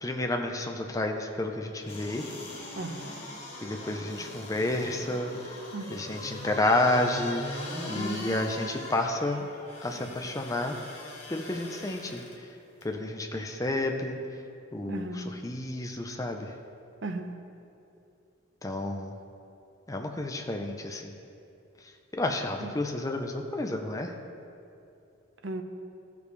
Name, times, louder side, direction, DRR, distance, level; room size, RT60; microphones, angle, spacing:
voice 1, 0.0-2.3 3.6-5.6 5.9-7.6 7.9-9.5 9.8-10.8 11.3-12.5 12.8-14.2 14.7-16.5 18.6-19.1 19.9-21.1 22.1-24.1, left 2 dB, 15° left, 3 dB, 0.5 m, -30 dB
sound 1, 1.8-12.3 12.8-12.9, left 1 dB, 35° left, 1.4 m, -40 dB
voice 2, 2.7-3.2 5.7-6.0 7.9-8.2 14.9-15.3 17.0-17.4 22.6-22.7 25.4-25.6, right 2 dB, 70° right, 5 dB, 0.7 m, -36 dB
15.0 x 5.1 x 3.3 m, 2.6 s
head